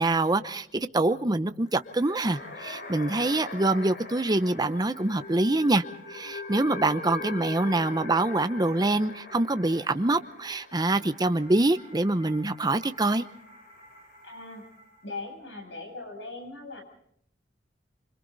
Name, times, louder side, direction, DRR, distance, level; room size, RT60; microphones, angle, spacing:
voice 1, 0.0-5.8 6.1-13.3, right 2 dB, 20° right, 10 dB, 0.8 m, -25 dB
sound 1, 1.6-15.0, left 3 dB, 60° left, 3.5 m, -42 dB
voice 2, 14.2-14.7 15.0-16.8, left 3 dB, 80° left, 3 dB, 8.0 m, -39 dB
26.0 x 25.0 x 4.1 m, 0.66 s
head